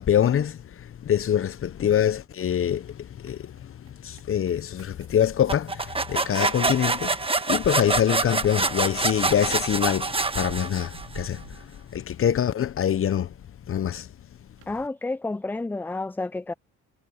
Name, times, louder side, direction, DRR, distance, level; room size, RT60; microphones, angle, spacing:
voice 1, 0.0-7.2 7.5-13.3 13.7-14.1, left 9 dB, 45° left, 0.8 m, -25 dB
sound 1, 1.1-2.0 2.3-6.6 7.3-12.6 12.9-13.8 14.2-14.3 14.6-14.7, right 12 dB, 85° right, 2.4 m, -49 dB
sound 2, 5.5-11.2, right 3 dB, 20° right, 1.3 m, -26 dB
voice 2, 14.7-16.5, left 2 dB, 5° left, 0.3 m, -30 dB
cardioid pair, 90°, 30 cm